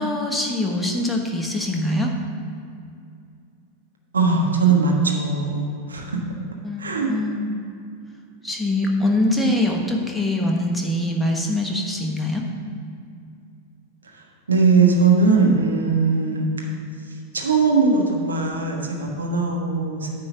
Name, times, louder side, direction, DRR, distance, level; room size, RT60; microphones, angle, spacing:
voice 1, 0.0-2.1 6.6-7.6 8.4-12.4, left 1 dB, 5° left, -1 dB, 1.2 m, -23 dB
voice 2, 4.1-6.2 6.8-7.1 14.5-16.5 17.3-20.1, right 4 dB, 70° right, 0 dB, 1.3 m, -19 dB
9.8 x 3.7 x 7.1 m, 2.4 s
figure-of-eight pair, 90°, 0 cm